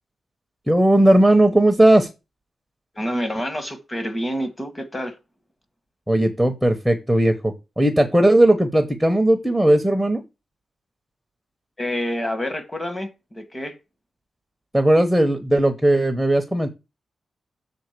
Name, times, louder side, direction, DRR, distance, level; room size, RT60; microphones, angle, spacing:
voice 1, 0.7-2.1 6.1-10.2 14.7-16.7, right 1 dB, ahead, 0.9 m, -17 dB
voice 2, 2.9-5.2 11.8-13.8, equal, 15° left, 1.4 m, -28 dB
7.2 x 3.8 x 6.5 m
wide cardioid pair, 150°, 0 cm